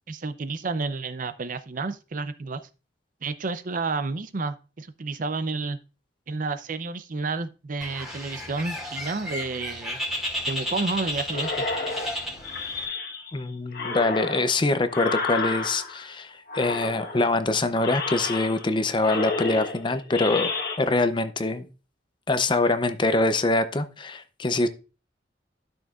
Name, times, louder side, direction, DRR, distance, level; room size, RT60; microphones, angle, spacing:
voice 1, 0.1-2.6 3.2-5.8 6.3-10.0 10.5-11.6, right 3 dB, 45° right, 0.6 m, -30 dB
Bird, 7.8-12.9, left 1 dB, 5° right, 2.2 m, -33 dB
sound 1, 11.3-13.4 13.7-16.1 16.5-17.4 17.8-18.7 19.0-20.8, left 3 dB, 60° left, 1.2 m, -31 dB
voice 2, 13.3-20.5 20.8-21.7 22.3-24.7, left 2 dB, 25° left, 0.6 m, -24 dB
12.0 x 6.3 x 2.4 m
head